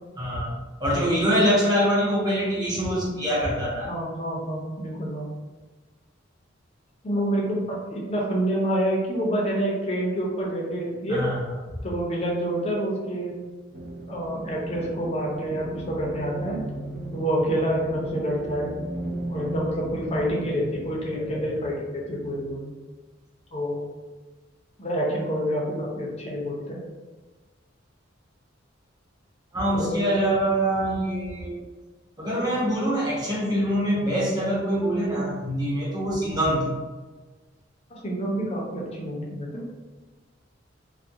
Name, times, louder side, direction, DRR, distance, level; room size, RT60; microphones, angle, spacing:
voice 1, 0.2-0.5 0.8-3.9 11.1-11.4 29.5-31.5 32.2-36.7, equal, 20° right, -6 dB, 0.8 m, -24 dB
voice 2, 3.8-5.3 7.0-11.2 11.8-13.3 14.1-16.6 17.1-18.7 19.3-22.7 23.5-23.8 24.8-26.8 29.7-30.0 37.9-39.6, equal, 35° left, -3 dB, 0.5 m, -27 dB
sound 1, 13.7-22.5, right 1 dB, 55° right, 0.5 m, -36 dB
2.4 x 2.2 x 2.7 m, 1.3 s
head